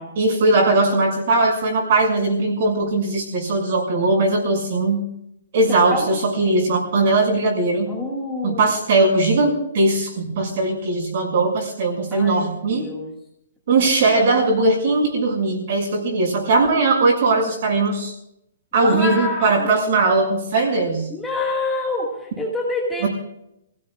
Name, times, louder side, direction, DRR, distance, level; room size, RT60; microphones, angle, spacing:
voice 1, 0.1-5.0 5.5-7.9 8.4-12.9 13.7-18.1 18.7-21.1 23.0-23.1, right 3 dB, 40° right, 0 dB, 6.5 m, -19 dB
voice 2, 7.9-8.7 12.1-13.1 13.8-13.9 18.8-19.7 21.1-23.1, left 2 dB, 5° left, -4 dB, 2.0 m, -27 dB
29.0 x 17.0 x 2.5 m, 0.80 s
hypercardioid pair, 175°, 0 cm